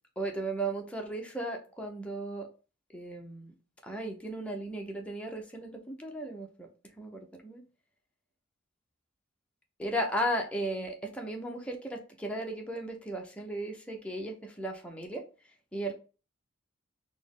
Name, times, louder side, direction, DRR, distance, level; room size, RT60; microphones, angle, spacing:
voice 1, 0.2-2.5 2.9-3.5 3.8-6.7 7.0-7.6 9.8-15.2 15.7-15.9, right 1 dB, 5° left, 2 dB, 0.6 m, -35 dB
4.1 x 2.0 x 3.6 m, 0.35 s
head